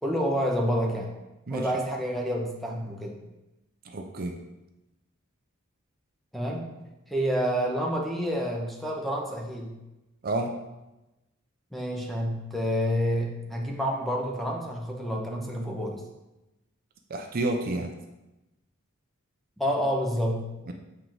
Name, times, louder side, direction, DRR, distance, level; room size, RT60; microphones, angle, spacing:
voice 1, 0.0-1.1 1.5-3.3 6.3-6.6 7.1-9.8 11.7-16.0 19.6-20.5, equal, ahead, 0 dB, 0.9 m, -28 dB
voice 2, 3.8-4.4 10.2-10.6 17.1-17.9 20.7-20.8, right 2 dB, 45° right, 3 dB, 0.6 m, -30 dB
7.3 x 4.9 x 3.9 m, 0.99 s
head